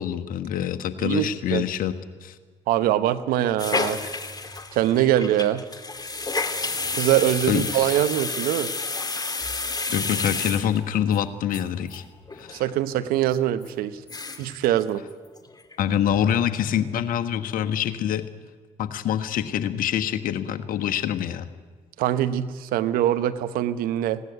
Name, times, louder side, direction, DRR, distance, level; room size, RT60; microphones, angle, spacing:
voice 1, 0.0-1.9 2.2-2.3 4.0-4.1 7.5-7.6 9.9-12.0 12.4-12.6 15.8-18.2 18.8-21.5, left 9 dB, 70° left, 9 dB, 1.4 m, -25 dB
voice 2, 1.0-1.6 2.7-4.0 4.7-5.6 6.9-8.7 12.5-14.0 14.4-15.0 22.0-24.2, right 12 dB, 75° right, 12 dB, 1.0 m, -23 dB
sound 1, 3.6-11.2 11.5-11.6 11.9-12.0 12.3-12.6 13.0-13.1 13.6-13.7 14.0-14.6 14.8-14.9 15.2-15.7 16.1-16.2, left 3 dB, 25° left, 2.3 m, -30 dB
19.5 x 16.5 x 9.4 m, 1.5 s
hypercardioid pair, 50°, 15 cm